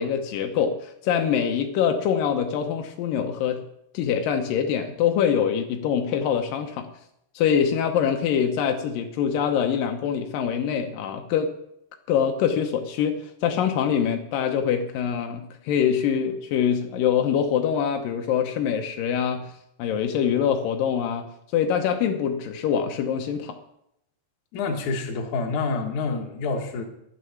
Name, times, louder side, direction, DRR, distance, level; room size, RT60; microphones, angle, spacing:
voice 1, 0.0-3.6 3.9-6.9 7.4-11.5 12.1-19.5 19.8-21.3 21.5-23.6, left 8 dB, 85° left, 5 dB, 1.9 m, -24 dB
voice 2, 24.5-26.8, left 4 dB, 55° left, 3 dB, 2.3 m, -27 dB
11.0 x 9.7 x 7.1 m, 0.78 s
omnidirectional pair, 5.3 m